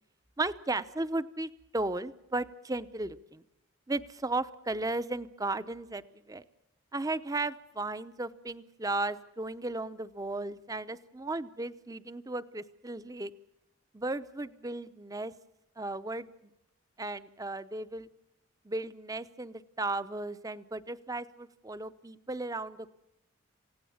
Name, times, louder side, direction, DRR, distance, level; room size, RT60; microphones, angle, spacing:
voice 1, 0.4-3.4 3.9-6.4 6.9-13.3 13.9-15.3 15.8-16.5 17.0-18.1 18.6-23.0, right 2 dB, 15° right, 14 dB, 0.7 m, -35 dB
27.5 x 17.0 x 7.2 m, 0.87 s
head